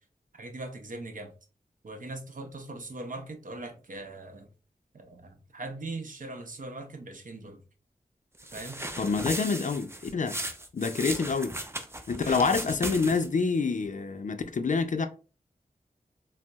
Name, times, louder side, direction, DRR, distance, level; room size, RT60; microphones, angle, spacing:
voice 1, 0.3-1.3 1.8-4.5 4.9-7.6 8.5-8.8 11.0-11.2 12.2-12.5, right 2 dB, 60° right, 0.6 m, -40 dB
sound 1, 8.4-13.4, right 1 dB, 15° right, 0.5 m, -37 dB
voice 2, 9.0-10.4 10.7-11.5 12.1-15.1, left 4 dB, 55° left, 0.4 m, -27 dB
3.8 x 2.0 x 2.2 m
cardioid pair, 40°, 16 cm